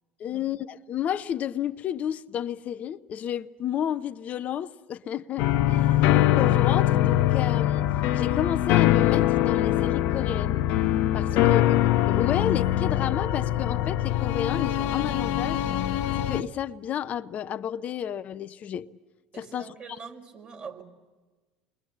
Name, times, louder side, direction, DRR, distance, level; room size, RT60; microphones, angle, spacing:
voice 1, 0.2-6.1 6.4-10.7 11.1-11.6 12.1-15.7 16.1-18.9 19.4-19.7, left 9 dB, 50° left, 0.8 m, -31 dB
sound 1, 5.4-16.4, left 13 dB, 70° left, 0.9 m, -23 dB
voice 2, 11.3-11.7 19.3-20.8, right 5 dB, 45° right, 5.4 m, -43 dB
28.0 x 22.5 x 7.4 m
hypercardioid pair, 70°, 3 cm